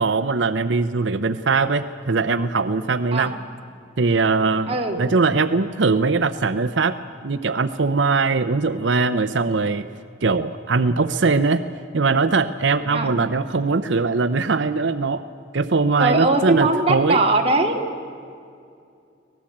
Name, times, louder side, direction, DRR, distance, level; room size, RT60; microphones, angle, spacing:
voice 1, 0.0-3.3 4.0-6.9 7.2-9.8 10.2-11.6 11.9-15.2 15.5-17.2, right 4 dB, 75° right, 11 dB, 0.7 m, -21 dB
voice 2, 4.7-5.0 12.9-13.1 16.0-17.8, right 2 dB, 30° right, 1 dB, 2.2 m, -20 dB
25.0 x 18.5 x 8.6 m, 2.4 s
head